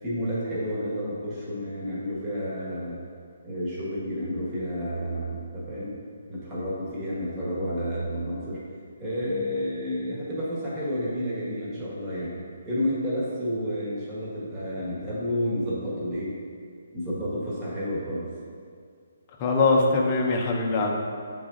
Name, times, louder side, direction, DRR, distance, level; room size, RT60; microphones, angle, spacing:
voice 1, 0.0-3.0 3.4-6.0 6.3-8.6 9.0-12.4 12.6-16.3 16.9-18.3, equal, 15° right, -9 dB, 1.6 m, -30 dB
voice 2, 19.4-20.9, left 3 dB, 25° left, -1 dB, 0.8 m, -22 dB
7.6 x 4.0 x 3.8 m, 2.1 s
hypercardioid pair, 165°, 0 cm